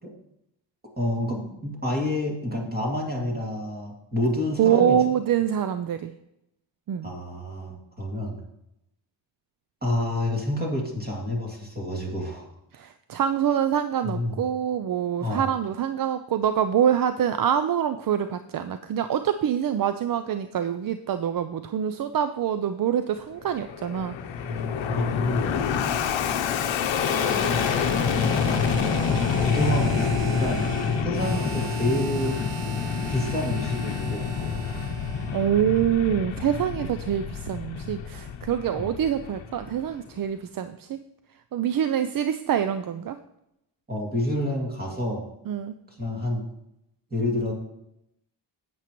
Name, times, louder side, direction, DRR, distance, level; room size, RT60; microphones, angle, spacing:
voice 1, 1.0-5.0 7.0-8.4 9.8-12.5 14.0-14.4 15.2-15.5 24.4-25.5 28.2-30.7 31.0-32.4 33.1-34.9 38.7-38.9 43.9-45.2 45.9-46.4 47.1-47.5, left 1 dB, 20° right, -1 dB, 2.3 m, -29 dB
voice 2, 4.6-6.1 6.9-7.1 12.7-24.2 35.3-41.0 41.5-43.2 45.5-45.8, right 9 dB, 50° right, 10 dB, 0.5 m, -25 dB
Fixed-wing aircraft airplane, 23.4-40.0, left 6 dB, 80° left, 0.8 m, -27 dB
Harmonica, 26.9-35.5, right 5 dB, 70° right, 1.0 m, -38 dB
11.0 x 8.5 x 3.0 m, 0.82 s
wide cardioid pair, 130°, 45 cm